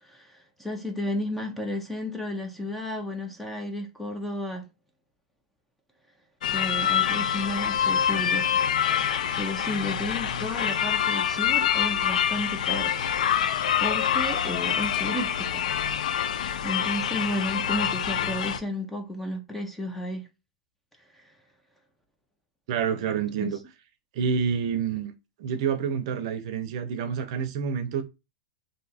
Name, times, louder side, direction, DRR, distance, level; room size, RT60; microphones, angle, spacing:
voice 1, 0.0-4.7 6.5-8.6 9.0-13.0 13.8-15.7 16.0-20.3 21.1-21.3 23.4-23.5, left 1 dB, 5° left, 0.5 m, -33 dB
sound 1, 6.4-18.6, left 9 dB, 90° left, 0.4 m, -26 dB
voice 2, 22.7-23.6 24.1-25.1 25.4-28.0, right 7 dB, 50° right, 0.6 m, -28 dB
2.7 x 2.3 x 4.1 m
supercardioid pair, 160°, 4 cm